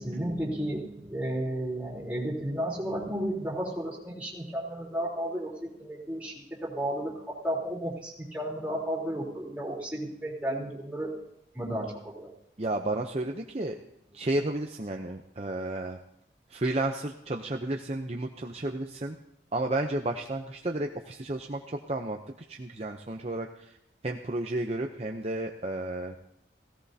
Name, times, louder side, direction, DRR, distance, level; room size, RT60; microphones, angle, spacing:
voice 1, 0.0-6.3 6.6-11.1 11.5-12.3, right 1 dB, 10° right, -5 dB, 3.6 m, -33 dB
voice 2, 12.6-13.8 14.1-16.0 16.5-19.2 19.5-23.8 24.0-26.1, right 2 dB, 35° right, 3 dB, 0.7 m, -32 dB
17.0 x 17.0 x 2.8 m, 0.79 s
head